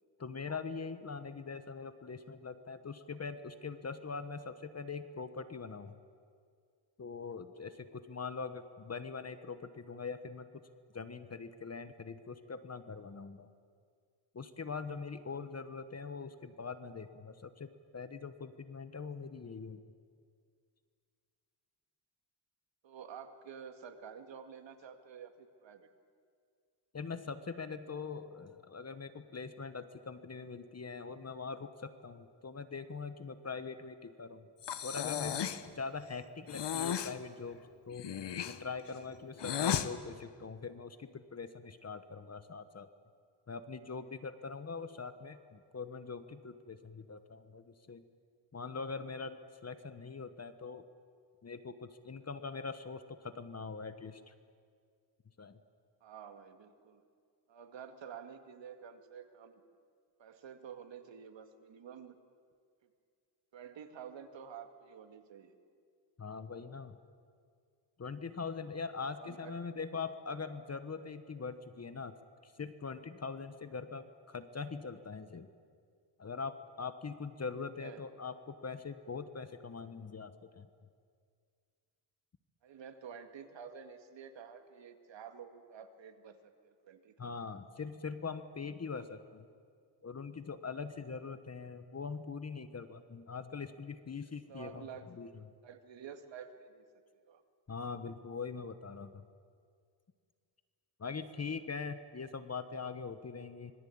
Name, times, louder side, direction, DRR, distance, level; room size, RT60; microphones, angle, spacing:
voice 1, 0.2-6.0 7.0-10.5 10.9-13.5 14.3-19.8 26.9-34.5 34.8-35.5 35.8-37.6 37.9-38.1 38.5-42.9 43.5-48.0 48.5-50.8 51.4-54.3 55.4-55.6 66.2-67.0 68.0-72.1 72.4-75.5 76.2-80.7 87.2-89.5 90.0-94.9 95.2-95.3 97.7-99.2 101.0-103.7, left 5 dB, 35° left, 11 dB, 1.2 m, -42 dB
voice 2, 22.8-25.9 56.0-57.0 57.5-59.6 60.2-62.2 63.5-65.6 69.2-69.6 77.8-78.0 82.6-87.4 94.5-95.3 95.6-96.8 97.2-97.4, right 7 dB, 80° right, 6 dB, 2.2 m, -50 dB
Breathing, 34.6-35.7 36.5-37.2 37.9-39.9, left 9 dB, 65° left, 1.2 m, -35 dB
26.0 x 22.5 x 8.7 m, 2.1 s
wide cardioid pair, 115°, 44 cm